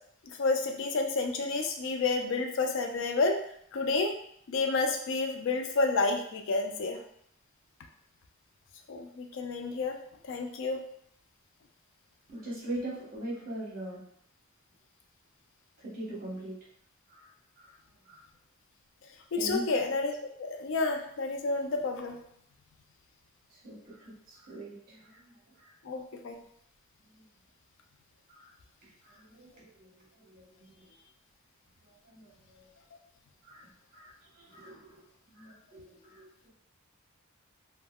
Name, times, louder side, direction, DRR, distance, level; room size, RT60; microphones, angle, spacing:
voice 1, 0.4-3.4 3.7-4.1 4.5-7.0 8.9-10.0 10.2-10.8 19.3-22.2 25.8-26.4, left 3 dB, 60° left, 4 dB, 0.3 m, -30 dB
voice 2, 12.3-14.0 15.8-16.6 17.1-17.3 17.6-17.7 18.0-18.2 19.4-19.7 23.5-25.2 25.6-25.7 27.1-27.2 28.3-28.5 29.0-31.0 31.9-32.7 33.4-36.5, right 1 dB, 45° right, -5 dB, 1.0 m, -42 dB
3.4 x 2.2 x 2.2 m, 0.67 s
head